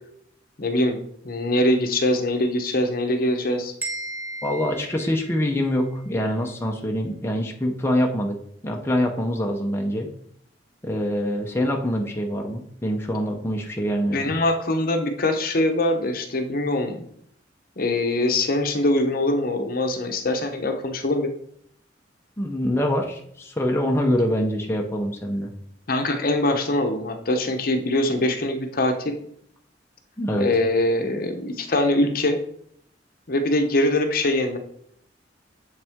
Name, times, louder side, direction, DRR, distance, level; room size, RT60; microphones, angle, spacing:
voice 1, 0.6-1.0 1.2-3.7 14.1-17.1 17.8-21.3 25.9-29.1 30.4-32.4 33.3-34.6, left 1 dB, 55° left, 5 dB, 0.8 m, -23 dB
sound 1, 3.8-5.8, right 2 dB, 10° right, 1.2 m, -35 dB
voice 2, 4.4-8.4 8.6-10.1 10.8-14.3 22.4-25.5 30.2-30.5, equal, 15° left, 1 dB, 0.7 m, -25 dB
7.4 x 5.6 x 3.6 m, 0.67 s
head